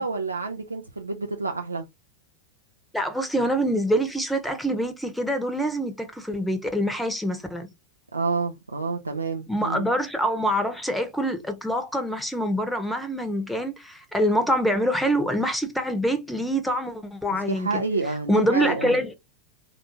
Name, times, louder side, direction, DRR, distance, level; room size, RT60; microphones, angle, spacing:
voice 1, 0.0-1.8 8.1-9.9 17.3-19.0, right 3 dB, 80° right, 0.4 m, -29 dB
voice 2, 2.9-7.7 9.5-17.8 18.3-19.1, equal, ahead, 0.8 m, -25 dB
4.1 x 2.5 x 2.8 m
figure-of-eight pair, 90°, 0 cm